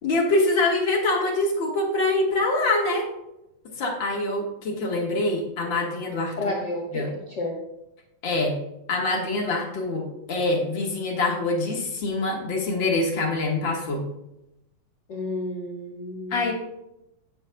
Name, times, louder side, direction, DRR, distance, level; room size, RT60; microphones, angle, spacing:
voice 1, 0.0-3.1 3.8-6.5 6.9-7.1 8.2-8.6 8.9-14.1 16.3-16.5, left 2 dB, 45° left, -1 dB, 1.6 m, -25 dB
voice 2, 6.4-7.5 15.1-16.5, left 1 dB, 90° left, -1 dB, 0.9 m, -31 dB
17.5 x 8.3 x 2.3 m, 0.88 s
omnidirectional pair, 4.1 m